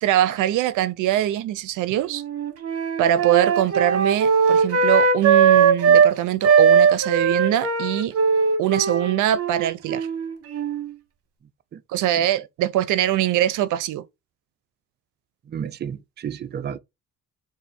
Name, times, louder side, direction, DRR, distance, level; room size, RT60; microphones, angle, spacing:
voice 1, 0.0-2.2 3.0-8.1 8.6-10.1 11.9-14.1, right 12 dB, 85° right, 0.6 m, -22 dB
Wind instrument woodwind instrument, 2.1-6.1 6.4-10.9, right 6 dB, 50° right, 1.1 m, -19 dB
voice 2, 15.5-16.8, right 8 dB, 35° right, 0.5 m, -32 dB
4.0 x 2.5 x 4.1 m
cardioid pair, 90°, 30 cm